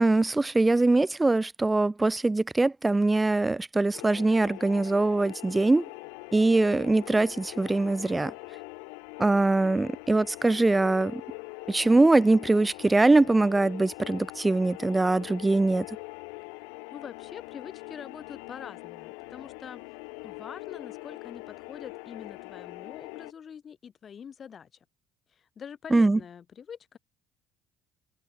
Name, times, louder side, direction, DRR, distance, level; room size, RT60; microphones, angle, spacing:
voice 1, 0.0-5.8 6.3-8.3 9.2-11.2 11.7-15.8 25.9-26.2, right 2 dB, 15° right, 0.6 m, -22 dB
sound 1, 3.9-23.3, left 40 dB or more, 85° left, 4.6 m, -43 dB
voice 2, 16.9-19.8 20.2-24.7 25.3-27.0, left 7 dB, 45° left, 4.1 m, -44 dB
supercardioid pair, 80°, 0 cm